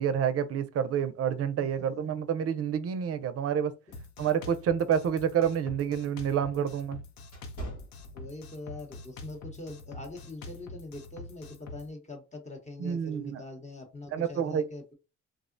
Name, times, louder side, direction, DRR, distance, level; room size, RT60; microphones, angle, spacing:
voice 1, 0.0-3.7 4.2-7.0 12.8-13.4 14.1-14.7, right 8 dB, 50° right, 0.5 m, -28 dB
Drum kit, 3.9-11.9, left 2 dB, 70° left, 0.6 m, -45 dB
sound 1, 7.2-8.8 9.2-9.4 10.0-10.3, right 1 dB, 90° left, 1.3 m, -45 dB
voice 2, 8.1-14.9, left 2 dB, 25° left, 0.8 m, -43 dB
3.5 x 2.0 x 2.5 m
cardioid pair, 90°, 30 cm